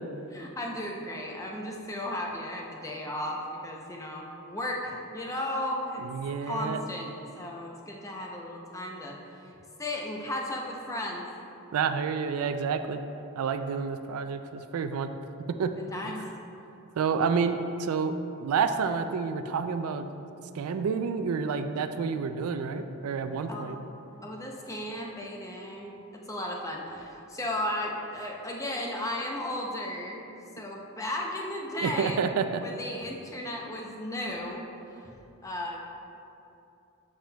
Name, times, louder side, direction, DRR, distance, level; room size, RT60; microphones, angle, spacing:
voice 1, 0.3-6.0 6.4-7.1 7.4-9.5 9.8-11.3 15.9-16.3 23.5-23.7 24.2-30.2 30.6-32.3 32.6-34.6 34.9-35.1 35.4-35.8, left 1 dB, 15° left, -1 dB, 0.6 m, -35 dB
voice 2, 6.0-6.8 11.7-13.0 13.4-15.1 15.5-15.7 17.0-20.1 20.5-23.8 31.8-32.6, right 5 dB, 80° right, 8 dB, 0.3 m, -29 dB
7.3 x 7.2 x 2.2 m, 2.8 s
head